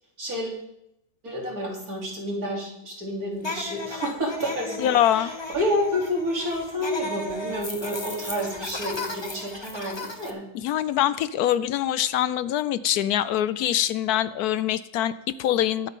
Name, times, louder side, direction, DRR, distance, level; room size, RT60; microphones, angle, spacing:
voice 1, 0.2-0.6 1.2-10.5, equal, 65° right, -2 dB, 3.7 m, -29 dB
sound 1, 3.4-10.3, left 2 dB, 20° left, 0.9 m, -35 dB
voice 2, 4.8-5.3 10.5-15.9, left 11 dB, 75° left, 15 dB, 1.1 m, -24 dB
21.5 x 8.3 x 3.7 m, 0.82 s
omnidirectional pair, 1.7 m